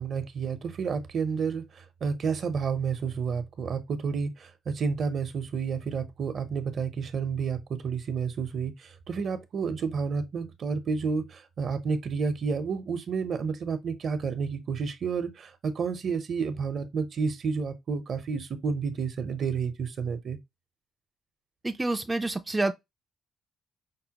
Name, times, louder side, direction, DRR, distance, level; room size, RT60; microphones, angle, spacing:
voice 1, 0.0-20.4, right 5 dB, 55° right, 0.7 m, -30 dB
voice 2, 21.6-22.7, right 2 dB, 15° right, 0.3 m, -28 dB
5.3 x 2.1 x 2.9 m
cardioid pair, 90°, 0 cm